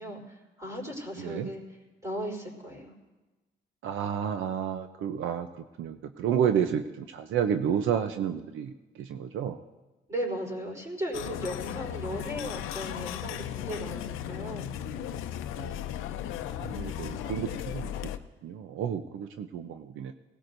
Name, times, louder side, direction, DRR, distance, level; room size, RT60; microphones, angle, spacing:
voice 1, 0.0-1.6 2.0-2.9 10.1-14.7, equal, 15° right, -1 dB, 4.2 m, -36 dB
voice 2, 1.2-1.5 3.8-5.5 5.8-9.6 15.6-15.8 16.6-18.1 18.4-20.1, right 8 dB, 80° right, 8 dB, 0.7 m, -31 dB
sound 1, 11.1-18.2, left 10 dB, 90° left, 0.6 m, -36 dB
19.5 x 17.5 x 2.6 m, 1.2 s
cardioid pair, 90°, 20 cm